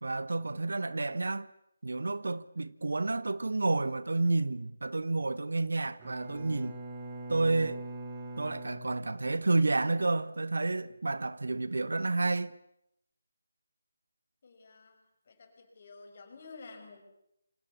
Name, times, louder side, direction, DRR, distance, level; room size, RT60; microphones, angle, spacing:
voice 1, 0.0-1.5 1.8-6.8 7.3-7.8 8.4-12.5, right 3 dB, 60° right, 1.0 m, -30 dB
Bowed string instrument, 6.0-9.6, right 2 dB, 20° right, 6.7 m, -43 dB
voice 2, 14.4-15.0 15.2-17.1, left 4 dB, 40° left, 6.4 m, -51 dB
28.5 x 26.0 x 7.0 m
figure-of-eight pair, 150°, 0 cm